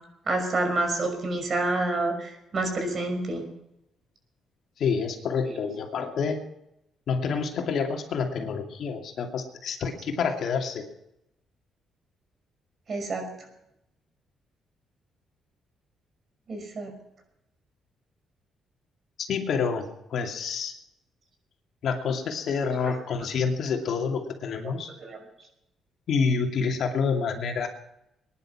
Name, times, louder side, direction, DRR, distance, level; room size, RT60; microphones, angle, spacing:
voice 1, 0.3-3.4 12.9-13.3 16.5-16.9 25.0-25.2, right 2 dB, 45° right, 4 dB, 5.8 m, -28 dB
voice 2, 4.8-6.4 7.1-10.9 19.3-20.7 21.8-24.9 26.1-27.7, left 5 dB, 65° left, 3 dB, 2.5 m, -28 dB
21.5 x 11.0 x 5.9 m, 0.84 s
cardioid pair, 90°, 0 cm